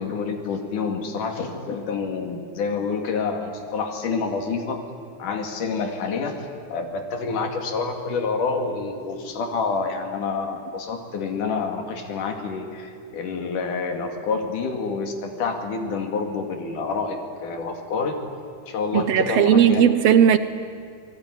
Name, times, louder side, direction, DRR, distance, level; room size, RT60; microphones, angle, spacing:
voice 1, 0.0-4.8 5.2-18.2 18.7-19.9, left 4 dB, 85° left, 4 dB, 3.9 m, -28 dB
voice 2, 18.9-20.4, right 9 dB, 70° right, 12 dB, 1.7 m, -16 dB
28.5 x 19.5 x 9.8 m, 2.2 s
omnidirectional pair, 3.5 m